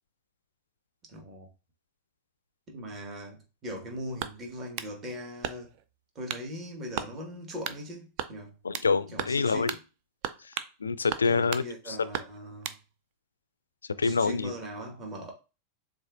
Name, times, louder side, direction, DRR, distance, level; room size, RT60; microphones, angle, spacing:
voice 1, 1.1-1.5 2.7-5.7 6.1-8.5 9.1-9.8 11.2-12.7 14.0-15.3, equal, 30° right, 1.5 m, -40 dB
sound 1, 4.2-4.9 5.4-5.8 6.3-6.5 7.0-7.1 7.6-7.8 8.2-8.9 9.2-9.4 9.7-9.8 10.2-10.8 11.1-11.7 12.1-12.8, right 10 dB, 45° right, 0.4 m, -35 dB
voice 2, 8.6-9.7 10.4-12.0 14.0-14.5, left 4 dB, 75° left, 0.3 m, -27 dB
7.0 x 2.6 x 2.5 m
figure-of-eight pair, 90°, 0 cm